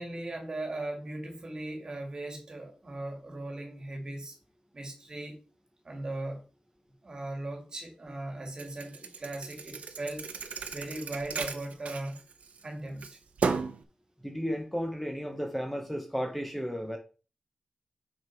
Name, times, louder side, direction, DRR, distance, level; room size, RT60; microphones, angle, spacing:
voice 1, 0.0-4.4 4.7-5.4 5.8-6.4 7.0-10.3 10.7-12.2 12.6-13.0, right 2 dB, 35° right, 2.0 m, -38 dB
Thump thud, 8.6-12.6 13.0-13.8, right 5 dB, 80° right, 0.8 m, -35 dB
voice 2, 14.2-17.0, equal, 5° left, 0.9 m, -33 dB
6.4 x 5.4 x 4.4 m
wide cardioid pair, 175°, 2 cm